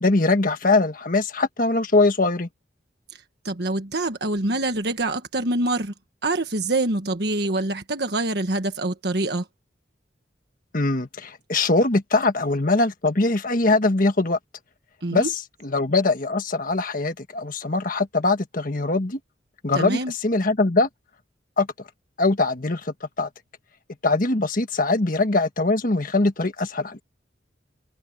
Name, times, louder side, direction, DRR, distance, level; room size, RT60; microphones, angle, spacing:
voice 1, 0.0-2.5 10.7-14.4 15.1-15.3 15.6-19.2 19.6-20.9 21.6-21.7 22.2-23.3 24.0-27.0, left 3 dB, 50° left, 1.5 m, -22 dB
voice 2, 3.1-5.9 6.2-9.5 15.0-15.3 19.7-20.1, right 2 dB, 60° right, 1.5 m, -25 dB
open air
head